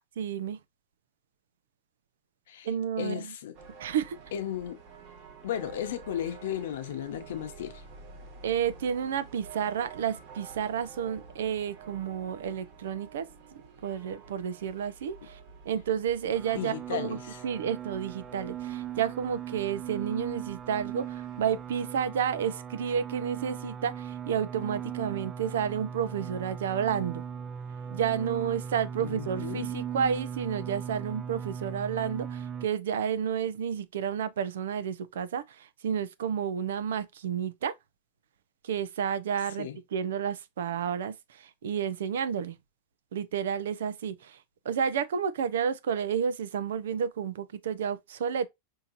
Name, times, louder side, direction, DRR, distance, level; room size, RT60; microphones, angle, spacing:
voice 1, 0.2-0.6 2.6-3.2 3.8-4.2 8.4-13.3 13.5-15.4 15.6-17.2 17.4-27.2 27.9-37.7 38.6-42.6 43.1-44.4 44.6-48.5, right 8 dB, 90° right, 0.7 m, -31 dB
voice 2, 3.0-3.6 4.3-4.8 5.4-7.8 16.5-17.4 29.0-29.7 39.6-39.8, left 10 dB, 65° left, 0.9 m, -35 dB
sound 1, 3.5-21.9, right 5 dB, 35° right, 1.2 m, -50 dB
sound 2, 16.3-32.7, right 8 dB, 20° right, 0.4 m, -38 dB
5.5 x 2.9 x 2.5 m
supercardioid pair, 180°, 0 cm